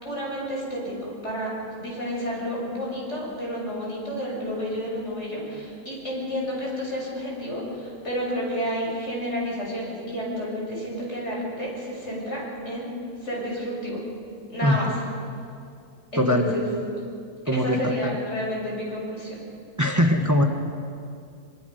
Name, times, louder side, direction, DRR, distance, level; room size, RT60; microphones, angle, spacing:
voice 1, 0.0-12.9 13.2-14.0 14.5-14.9 16.1-16.7 17.5-19.4, equal, 45° left, -4 dB, 6.8 m, -30 dB
voice 2, 14.6-15.0 16.2-16.5 17.5-18.2 19.8-20.4, left 1 dB, 10° right, 3 dB, 1.2 m, -22 dB
26.0 x 22.5 x 5.3 m, 2.4 s
omnidirectional pair, 1.6 m